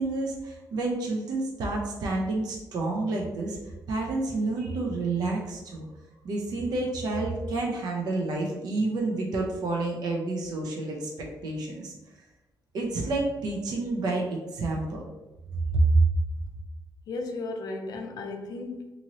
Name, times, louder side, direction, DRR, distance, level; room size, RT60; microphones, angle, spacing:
voice 1, 0.0-3.6 3.9-5.9 6.2-11.1 11.4-11.9 12.7-15.0 15.7-16.0, right 2 dB, 60° right, 0.6 m, -28 dB
voice 2, 17.1-18.9, left 3 dB, 55° left, 0.4 m, -35 dB
2.7 x 2.6 x 3.0 m
wide cardioid pair, 170°, 8 cm